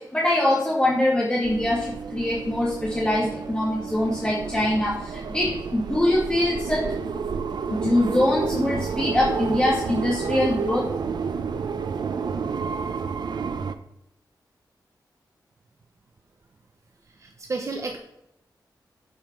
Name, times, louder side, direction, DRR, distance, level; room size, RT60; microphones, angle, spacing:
voice 1, 0.0-6.8 7.7-10.9, left 1 dB, 10° left, -5 dB, 2.1 m, -23 dB
sound 1, 1.4-13.7, right 6 dB, 70° right, 0.8 m, -30 dB
voice 2, 17.1-18.0, right 3 dB, 45° right, 3 dB, 1.0 m, -32 dB
12.0 x 5.6 x 6.1 m, 0.84 s
wide cardioid pair, 175°, 8 cm